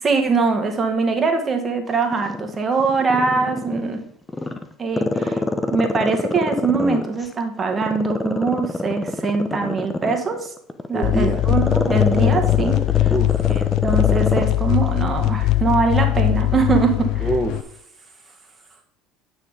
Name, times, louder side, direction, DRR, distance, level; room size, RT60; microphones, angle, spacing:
voice 1, 0.0-4.0 4.8-5.4 5.7-10.5 10.9-13.1 13.8-17.3, right 4 dB, 30° right, 4 dB, 1.9 m, -22 dB
Growling, 2.1-3.9 4.3-7.3 7.7-14.5 14.9-15.0, left 2 dB, 15° left, 1.0 m, -25 dB
voice 2, 10.9-11.4 13.1-13.6 17.2-18.4, right 1 dB, 10° right, 0 dB, 1.2 m, -27 dB
sound 1, 11.0-17.6, left 15 dB, 65° left, 0.4 m, -20 dB
9.6 x 6.0 x 3.7 m, 0.68 s
hypercardioid pair, 75°, 0 cm